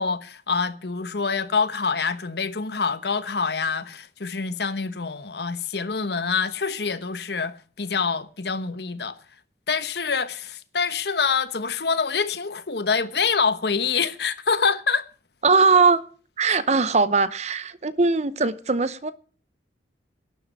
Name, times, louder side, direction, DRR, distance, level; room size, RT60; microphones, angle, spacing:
voice 1, 0.0-9.2 9.7-15.1 16.5-16.6, left 5 dB, 65° left, 1.1 m, -26 dB
voice 2, 15.4-16.0 16.4-19.1, right 4 dB, 40° right, 0.8 m, -20 dB
12.0 x 8.1 x 8.7 m
head